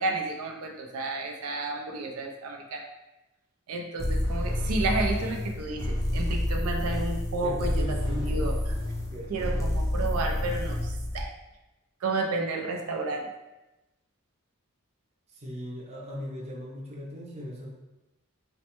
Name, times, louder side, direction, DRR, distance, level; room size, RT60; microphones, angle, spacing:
voice 1, 0.0-2.8 3.7-8.5 9.3-11.3 12.0-13.3, right 2 dB, 90° right, 2 dB, 0.4 m, -31 dB
sound 1, 4.0-11.3, left 1 dB, 15° left, 0.5 m, -29 dB
voice 2, 7.4-8.5 9.1-9.6 15.4-17.7, equal, 30° right, -3 dB, 0.6 m, -38 dB
4.1 x 2.1 x 2.9 m, 1.0 s
head